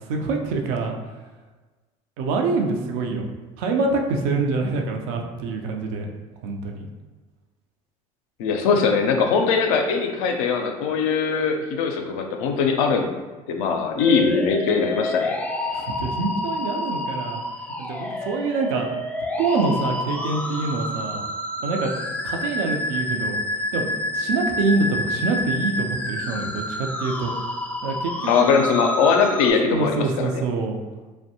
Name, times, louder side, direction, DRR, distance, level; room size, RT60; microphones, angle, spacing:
voice 1, 0.1-0.9 2.2-3.3 3.6-6.1 6.4-6.9 15.7-17.4 17.8-18.9 19.4-21.2 21.6-21.9 22.2-23.4 23.7-27.3 27.8-28.6 29.7-30.8, right 3 dB, 75° right, 2 dB, 0.4 m, -25 dB
voice 2, 8.4-13.1 13.5-15.4 28.3-30.4, left 5 dB, 80° left, 4 dB, 0.4 m, -21 dB
sound 1, 14.0-29.5, left 1 dB, 10° left, 0.3 m, -29 dB
2.6 x 2.1 x 2.7 m, 1.3 s
hypercardioid pair, 75°, 18 cm